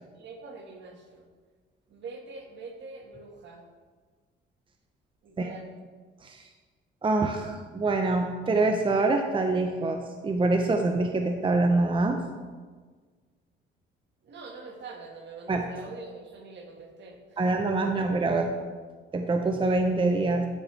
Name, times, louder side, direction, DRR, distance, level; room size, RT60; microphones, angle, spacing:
voice 1, 0.1-1.3 1.9-3.6 5.2-5.8 14.2-17.5 17.8-18.0, right 3 dB, 65° right, 2 dB, 1.5 m, -44 dB
voice 2, 7.0-12.2 15.5-15.6 17.4-18.5 19.1-20.5, right 3 dB, 25° right, 4 dB, 0.6 m, -25 dB
11.0 x 5.9 x 3.2 m, 1.5 s
cardioid pair, 90°, 20 cm